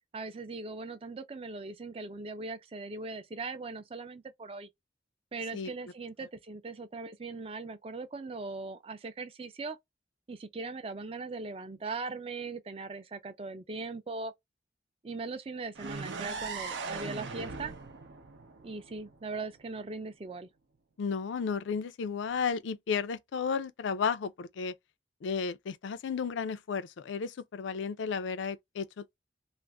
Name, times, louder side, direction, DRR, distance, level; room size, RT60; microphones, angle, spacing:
voice 1, 0.1-4.7 5.3-9.8 10.3-14.3 15.0-17.7 18.6-20.5, right 3 dB, 30° right, 0.4 m, -40 dB
sound 1, 15.8-19.6, right 4 dB, 80° right, 0.6 m, -40 dB
voice 2, 21.0-24.7 25.2-29.2, left 6 dB, 80° left, 0.4 m, -33 dB
2.4 x 2.0 x 3.2 m
head